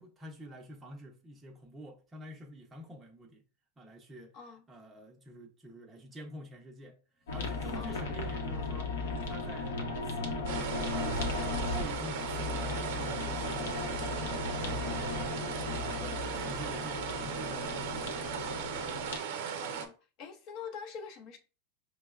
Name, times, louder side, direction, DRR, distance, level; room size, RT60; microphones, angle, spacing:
voice 1, 0.0-3.4 3.8-4.3 4.7-7.0 7.3-8.9 9.2-15.3 15.8-18.7, equal, 15° right, 0.5 m, -48 dB
sound 1, 7.2-7.8, equal, 15° left, 0.9 m, -53 dB
sound 2, 7.3-19.2, left 3 dB, 90° left, 0.8 m, -36 dB
sound 3, 10.4-19.9, right 7 dB, 65° right, 0.6 m, -37 dB
voice 2, 16.0-16.5 19.6-21.4, left 6 dB, 40° left, 0.5 m, -45 dB
5.1 x 2.0 x 2.3 m
supercardioid pair, 155°, 0 cm